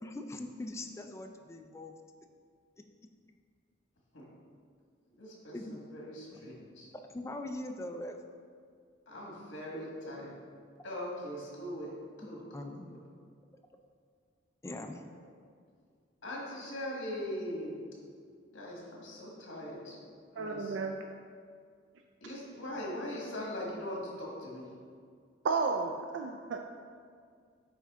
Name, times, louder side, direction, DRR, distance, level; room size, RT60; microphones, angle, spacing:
voice 1, 0.0-2.0 5.5-5.8 6.3-6.4 7.1-8.2 12.5-12.9 14.6-15.0, left 1 dB, 15° left, 4 dB, 0.3 m, -41 dB
voice 2, 5.1-6.9 9.1-10.3 10.8-13.0 14.7-14.9 16.2-17.8 18.5-20.0 20.3-20.8 22.2-24.7, left 1 dB, 70° left, -3 dB, 1.5 m, -41 dB
voice 3, 20.4-21.0 22.2-22.3 25.4-26.6, right 4 dB, 70° right, 3 dB, 0.3 m, -32 dB
8.7 x 3.5 x 3.6 m, 2.1 s
head